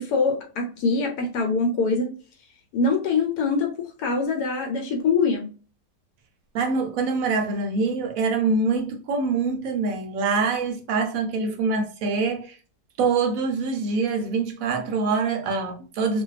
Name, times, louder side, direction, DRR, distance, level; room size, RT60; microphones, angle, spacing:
voice 1, 0.0-2.1 2.7-5.5, left 4 dB, 80° left, 1.1 m, -24 dB
voice 2, 6.5-12.6 13.0-16.2, right 4 dB, 65° right, 0.9 m, -24 dB
2.6 x 2.2 x 2.3 m
omnidirectional pair, 1.7 m